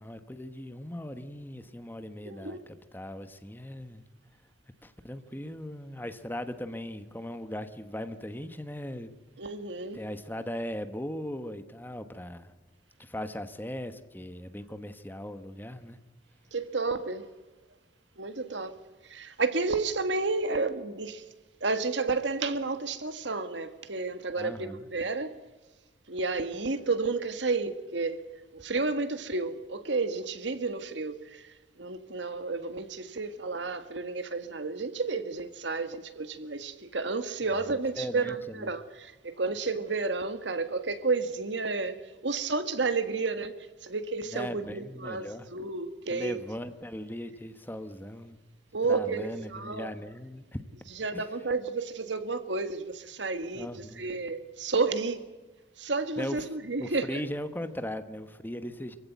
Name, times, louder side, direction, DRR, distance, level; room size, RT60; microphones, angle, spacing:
voice 1, 0.0-4.0 4.8-9.1 9.9-12.5 13.0-16.0 24.3-24.9 38.0-38.7 44.3-45.5 46.1-48.4 48.9-50.6 51.1-51.3 53.5-54.0 56.2-56.5 56.8-59.0, equal, 10° left, 1.1 m, -38 dB
voice 2, 2.2-2.6 9.4-10.0 16.5-17.3 18.2-18.7 19.1-21.2 21.6-25.3 26.1-28.2 28.5-31.4 31.8-42.0 42.2-43.5 43.8-46.4 48.7-49.9 51.0-55.2 55.8-57.2, right 3 dB, 75° right, 1.7 m, -31 dB
24.5 x 15.5 x 9.2 m
head